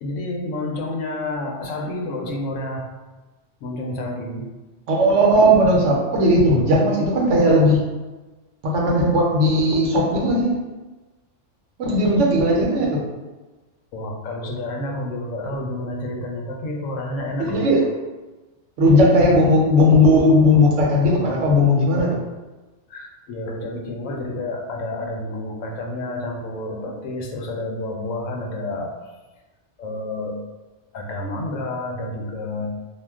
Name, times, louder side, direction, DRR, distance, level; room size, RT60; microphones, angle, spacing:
voice 1, 0.0-2.9 3.6-4.5 13.9-17.7 21.1-21.4 22.9-29.0 29.8-30.4 30.9-32.7, left 1 dB, 85° left, 1 dB, 0.9 m, -29 dB
voice 2, 4.9-7.9 8.6-10.6 11.8-13.0 17.4-17.9 18.8-22.2, left 1 dB, 75° right, -2 dB, 1.0 m, -17 dB
2.4 x 2.2 x 3.4 m, 1.2 s
omnidirectional pair, 1.3 m